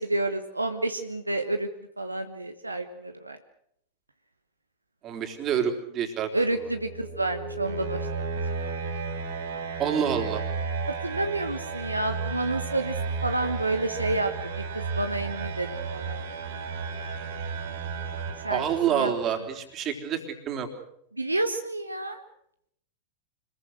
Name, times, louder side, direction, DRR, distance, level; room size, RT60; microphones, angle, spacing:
voice 1, 0.0-1.7 2.0-3.4 6.3-8.3 8.6-8.7 11.0-12.9 13.2-16.3 18.4-18.6 18.9-19.1 21.1-22.2, right 2 dB, 85° right, 7 dB, 1.3 m, -29 dB
voice 2, 5.0-6.3 9.8-10.4 18.5-20.7, right 8 dB, 35° right, 5 dB, 3.7 m, -27 dB
sound 1, 6.4-19.3, right 4 dB, 60° right, 4.6 m, -33 dB
26.0 x 21.5 x 6.6 m, 0.73 s
figure-of-eight pair, 90°, 0 cm